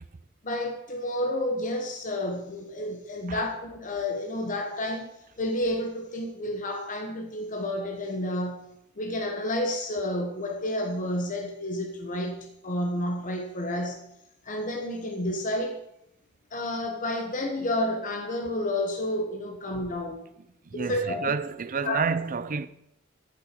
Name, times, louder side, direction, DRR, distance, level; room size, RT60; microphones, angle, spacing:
voice 1, 0.4-8.7 9.0-14.0 14.4-15.8 16.5-20.2 20.8-21.3 21.8-22.0, left 1 dB, 40° left, 1.0 m, -30 dB
voice 2, 20.7-22.7, right 5 dB, 40° right, 0.5 m, -29 dB
14.0 x 6.4 x 4.4 m
head